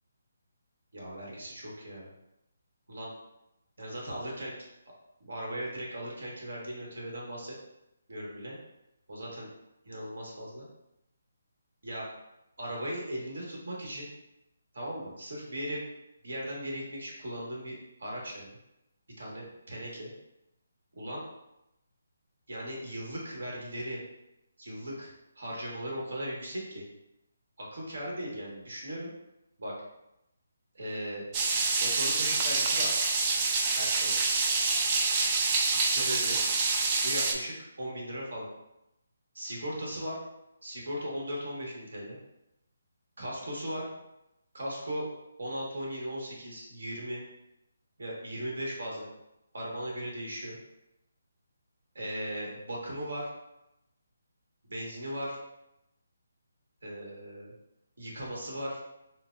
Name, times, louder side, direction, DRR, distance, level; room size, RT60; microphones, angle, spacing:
voice 1, 0.9-2.1 2.9-3.1 3.8-4.6 5.2-7.5 8.1-8.6 9.1-9.5 9.9-10.7 11.8-12.1 12.6-14.1 14.7-15.8 16.2-18.6 19.2-20.1 21.0-21.2 22.5-24.0 24.6-25.1 25.3-26.8 27.6-29.1 29.6-29.7 30.7-31.2 31.8-33.0 33.8-34.2 35.7-36.4 37.0-38.5 39.3-40.2 40.6-42.2 43.2-43.9 44.5-45.1 45.4-47.2 48.0-49.1 49.5-50.6 51.9-53.3 54.6-55.4 56.8-57.5 58.0-58.8, equal, 75° right, -3 dB, 1.3 m, -37 dB
sound 1, 31.3-37.3, right 4 dB, 25° right, 0.3 m, -27 dB
4.5 x 2.1 x 2.3 m, 0.88 s
hypercardioid pair, 165°, 0 cm